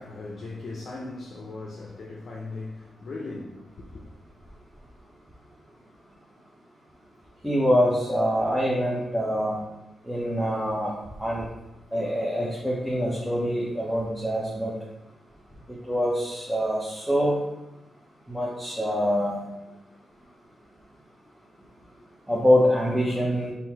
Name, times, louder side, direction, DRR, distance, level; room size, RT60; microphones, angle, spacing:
voice 1, 0.0-4.1, left 3 dB, 60° left, 0.6 m, -38 dB
voice 2, 7.4-9.6 10.1-10.9 11.2-11.5 11.9-14.7 15.9-17.4 18.3-19.5 22.3-23.5, equal, 5° right, 0.8 m, -24 dB
3.7 x 2.7 x 4.5 m
cardioid pair, 90°, 0 cm